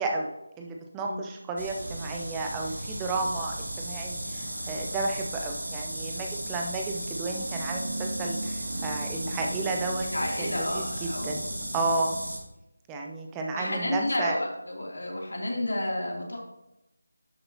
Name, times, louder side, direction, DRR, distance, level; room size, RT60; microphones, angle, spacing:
voice 1, 0.0-10.1 10.4-11.4 11.7-12.2 12.9-14.4, right 3 dB, 10° right, 1 dB, 0.6 m, -32 dB
sound 1, 1.6-12.4, right 1 dB, 70° right, 2.5 m, -34 dB
voice 2, 10.1-11.5 13.5-16.4, left 1 dB, 70° left, -1 dB, 2.7 m, -31 dB
11.5 x 6.7 x 2.8 m, 0.92 s
figure-of-eight pair, 160°, 0 cm